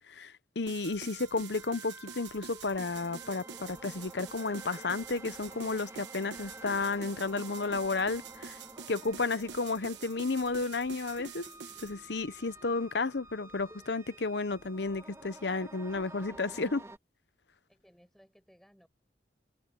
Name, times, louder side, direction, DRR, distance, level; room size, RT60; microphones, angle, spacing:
voice 1, 0.1-8.6 8.9-11.5 11.8-16.8, left 3 dB, 75° left, 0.9 m, -32 dB
sound 1, 0.7-11.9, right 7 dB, 85° right, 1.2 m, -47 dB
sound 2, 0.8-17.0, right 2 dB, 15° right, 1.9 m, -50 dB
voice 2, 17.5-18.9, equal, ahead, 6.2 m, -62 dB
open air
head